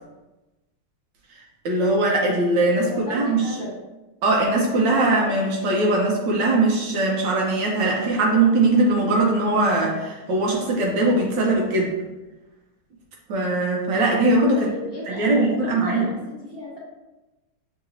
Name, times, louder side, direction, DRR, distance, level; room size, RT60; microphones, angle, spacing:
voice 1, 1.3-3.6 4.2-12.0 13.3-14.7 15.1-16.0, right 2 dB, 65° right, -1 dB, 1.3 m, -21 dB
voice 2, 2.8-3.8 14.5-16.2 16.5-16.8, left 2 dB, 70° left, -6 dB, 0.5 m, -34 dB
6.8 x 2.9 x 2.6 m, 1.1 s
omnidirectional pair, 2.3 m